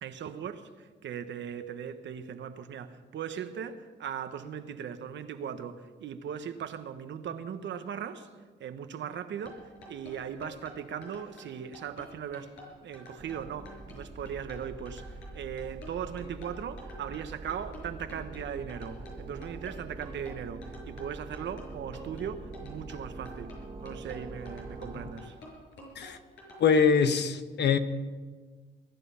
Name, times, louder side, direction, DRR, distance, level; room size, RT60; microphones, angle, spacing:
voice 1, 0.0-8.3 8.6-9.6 9.9-12.5 12.8-25.3, right 8 dB, 65° right, 9 dB, 1.2 m, -39 dB
sound 1, 9.3-26.8, left 1 dB, 85° left, 6.2 m, -50 dB
sound 2, 13.2-25.1, right 2 dB, 30° right, 1.2 m, -44 dB
voice 2, 26.6-27.8, left 6 dB, 60° left, 9 dB, 1.2 m, -23 dB
21.5 x 11.0 x 5.6 m, 1.4 s
cardioid pair, 90°, 20 cm